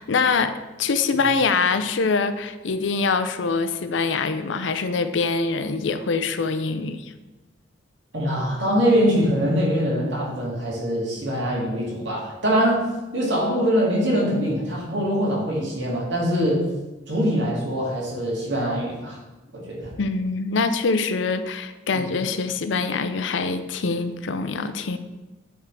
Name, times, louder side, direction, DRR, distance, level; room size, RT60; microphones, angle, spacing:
voice 1, 0.0-7.1 20.0-25.0, left 4 dB, 70° left, 10 dB, 0.5 m, -24 dB
voice 2, 8.1-16.7 17.1-19.2 19.5-19.9 21.9-22.1, equal, 65° right, -4 dB, 2.3 m, -23 dB
9.4 x 3.6 x 4.7 m, 1.1 s
head